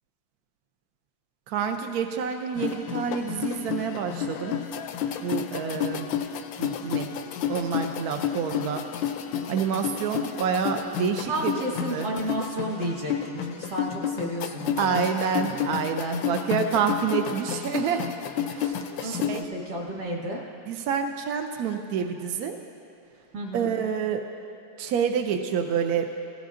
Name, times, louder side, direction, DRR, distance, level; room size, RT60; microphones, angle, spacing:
voice 1, 1.5-4.6 5.2-6.1 6.6-7.1 7.5-8.8 9.5-11.6 11.9-12.1 14.7-18.1 18.5-19.5 20.7-22.6 23.5-24.2 24.8-26.1, right 7 dB, 70° right, 5 dB, 0.9 m, -28 dB
sound 1, 2.6-19.4, left 9 dB, 80° left, 1.3 m, -31 dB
voice 2, 11.3-15.0 15.3-15.7 19.0-20.4 23.3-23.7, right 1 dB, 55° right, -2 dB, 2.3 m, -32 dB
17.5 x 15.0 x 2.5 m, 2.9 s
omnidirectional pair, 2.1 m